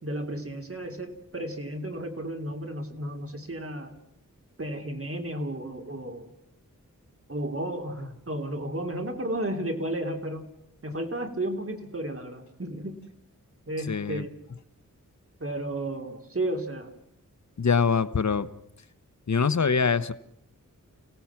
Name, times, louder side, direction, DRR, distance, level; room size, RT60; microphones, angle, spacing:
voice 1, 0.0-4.0 4.6-6.3 7.3-10.5 10.8-13.0 13.7-14.4 15.4-16.9, right 1 dB, 45° right, 4 dB, 3.2 m, -33 dB
voice 2, 13.9-14.2 17.6-18.5 19.3-20.1, left 5 dB, 60° left, 14 dB, 1.0 m, -24 dB
30.0 x 17.5 x 5.8 m, 0.77 s
wide cardioid pair, 85°, 32 cm